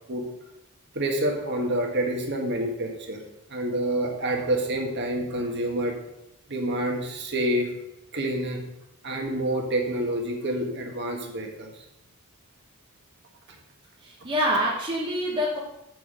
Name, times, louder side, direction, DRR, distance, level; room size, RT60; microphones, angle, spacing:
voice 1, 0.9-3.2 3.5-6.0 6.5-7.7 8.1-8.6 9.0-11.7, right 1 dB, 50° right, 2 dB, 1.5 m, -27 dB
voice 2, 14.0-15.6, equal, 20° right, -4 dB, 1.2 m, -26 dB
7.9 x 6.2 x 5.0 m, 0.86 s
head